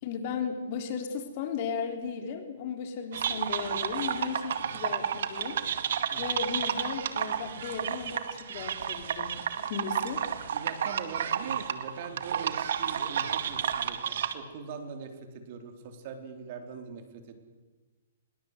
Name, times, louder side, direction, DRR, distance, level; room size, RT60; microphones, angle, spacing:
voice 1, 0.0-5.6 6.2-9.3 9.6-10.2, left 6 dB, 45° left, 5 dB, 3.9 m, -35 dB
sound 1, 3.1-14.3, right 8 dB, 65° right, 2.0 m, -31 dB
voice 2, 10.5-14.0 14.3-17.4, right 6 dB, 45° right, 6 dB, 3.8 m, -42 dB
25.5 x 21.5 x 8.2 m, 1.2 s
hypercardioid pair, 150°, 0 cm